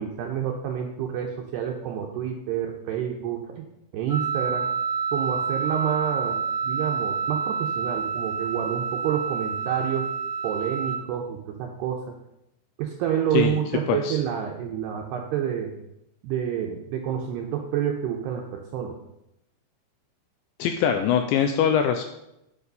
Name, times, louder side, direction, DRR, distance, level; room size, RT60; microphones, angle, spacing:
voice 1, 0.0-3.6 3.9-4.7 5.1-6.4 6.6-10.1 10.4-12.2 12.8-15.7 16.2-18.9, right 9 dB, 80° right, 2 dB, 2.5 m, -28 dB
Wind instrument woodwind instrument, 4.1-11.0, right 6 dB, 45° left, 0.5 m, -28 dB
voice 2, 20.6-22.0, left 8 dB, 80° left, 6 dB, 2.7 m, -22 dB
9.2 x 8.6 x 5.4 m, 0.85 s
omnidirectional pair, 5.7 m